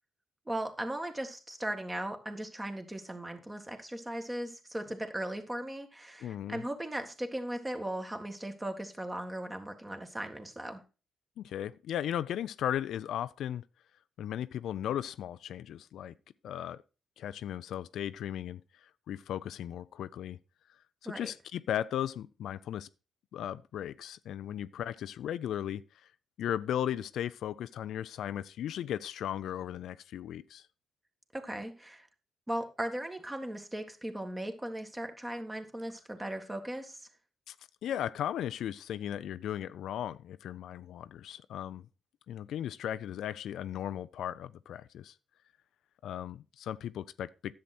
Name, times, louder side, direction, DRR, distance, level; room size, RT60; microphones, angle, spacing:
voice 1, 0.5-10.8 21.1-21.2 31.3-32.1 32.5-37.1, right 1 dB, 15° right, 1.7 m, -38 dB
voice 2, 6.2-6.6 11.4-13.6 14.2-16.1 16.4-16.8 17.2-20.4 21.0-22.9 23.3-25.8 26.4-30.6 37.5-37.6 37.8-41.8 42.3-45.1 46.0-47.5, left 10 dB, 80° left, 0.4 m, -36 dB
10.5 x 7.7 x 4.2 m
cardioid pair, 90°, 0 cm